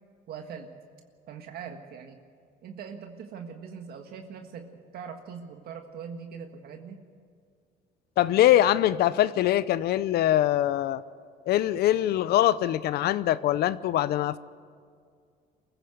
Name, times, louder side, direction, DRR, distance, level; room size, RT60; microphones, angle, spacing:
voice 1, 0.3-0.7 1.3-2.2 2.6-7.0, right 6 dB, 65° right, 4 dB, 1.7 m, -41 dB
voice 2, 8.2-11.0 11.5-14.4, left 13 dB, 70° left, 16 dB, 0.7 m, -23 dB
24.0 x 15.5 x 8.0 m, 2.2 s
cardioid pair, 110°, 17 cm